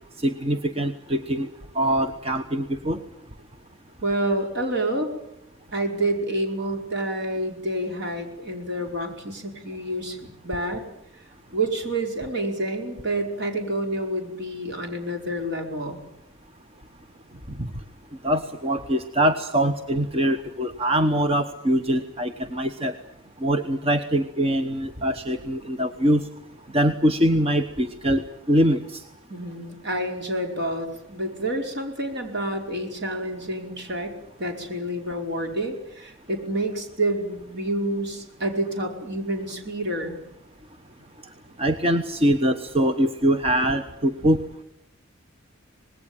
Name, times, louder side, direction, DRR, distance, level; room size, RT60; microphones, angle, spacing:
voice 1, 0.2-1.5 1.7-3.0 17.6-17.7 18.2-22.9 23.4-26.2 26.7-29.0 41.6-44.4, right 1 dB, 30° right, 7 dB, 1.1 m, -23 dB
voice 2, 4.0-5.1 5.7-10.8 11.5-16.0 29.3-40.2, right 1 dB, 60° right, 3 dB, 5.1 m, -28 dB
26.0 x 20.0 x 8.9 m, 0.78 s
head